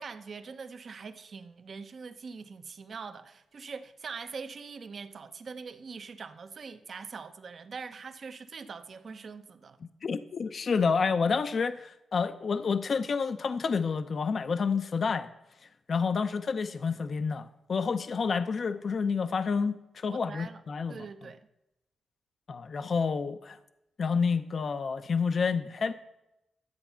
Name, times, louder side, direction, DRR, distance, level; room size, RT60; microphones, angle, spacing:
voice 1, 0.0-9.8 20.1-20.6 20.9-21.4, right 5 dB, 55° right, 0.9 m, -43 dB
voice 2, 10.0-15.3 15.9-21.0 22.5-23.6 24.0-25.9, left 5 dB, 55° left, 0.6 m, -29 dB
12.5 x 8.0 x 5.7 m
cardioid pair, 65°, 0 cm